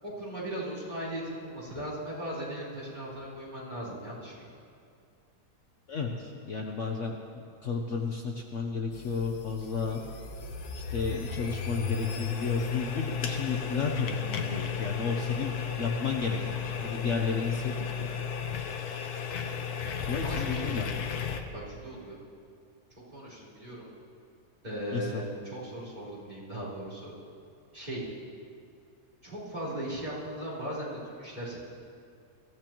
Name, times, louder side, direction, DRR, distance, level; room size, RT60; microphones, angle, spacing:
voice 1, 0.0-4.5 20.2-20.8 21.5-22.2 23.1-23.8 24.6-27.1 27.7-28.0 29.2-31.6, right 1 dB, 25° right, -8 dB, 4.2 m, -38 dB
voice 2, 5.9-10.0 10.7-15.5 15.8-18.1 20.0-20.9 21.3-21.4 24.9-25.2, left 5 dB, 55° left, 1 dB, 1.1 m, -33 dB
sound 1, 8.9-21.4, left 7 dB, 75° left, 1.4 m, -34 dB
22.0 x 15.5 x 3.0 m, 2.4 s
omnidirectional pair, 1.7 m